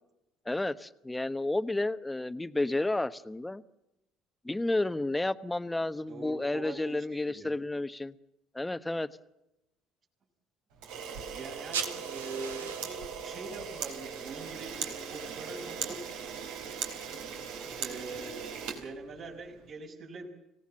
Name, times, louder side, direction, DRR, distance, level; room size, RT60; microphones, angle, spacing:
voice 1, 0.4-3.6 4.4-8.1 8.5-9.1, left 2 dB, 10° left, 14 dB, 1.1 m, -31 dB
voice 2, 6.1-7.6 11.3-16.0 17.8-20.3, right 3 dB, 55° right, -1 dB, 5.9 m, -43 dB
Camera, 10.8-19.5, right 7 dB, 75° right, 4.2 m, -39 dB
sound 1, 11.5-16.7, right 6 dB, 90° right, 1.9 m, -43 dB
26.0 x 17.5 x 7.6 m, 0.90 s
hypercardioid pair, 60°, 0 cm